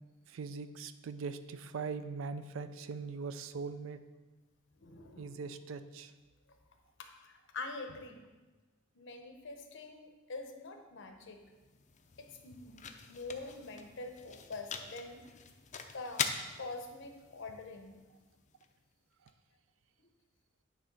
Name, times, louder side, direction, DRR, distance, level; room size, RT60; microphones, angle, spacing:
voice 1, 0.3-4.0 5.2-6.1, right 4 dB, 70° right, 11 dB, 0.4 m, -41 dB
voice 2, 4.8-5.4 7.0-8.2 9.0-11.4 12.2-15.2 15.9-16.3 16.6-18.0, left 3 dB, 60° left, 5 dB, 0.8 m, -45 dB
sound 1, 11.2-19.3, left 6 dB, 35° left, 0.4 m, -44 dB
8.9 x 3.2 x 5.3 m, 1.2 s
head